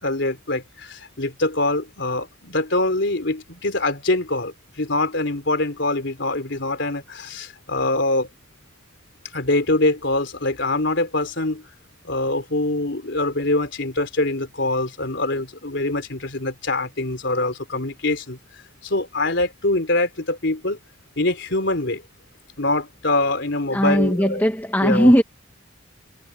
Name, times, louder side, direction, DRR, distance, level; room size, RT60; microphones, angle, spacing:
voice 1, 0.0-8.3 9.3-11.6 12.0-18.4 18.8-20.8 21.2-22.0 22.6-24.4 24.8-25.1, left 2 dB, 60° left, 4.1 m, -24 dB
voice 2, 23.7-25.2, equal, 10° left, 1.9 m, -18 dB
head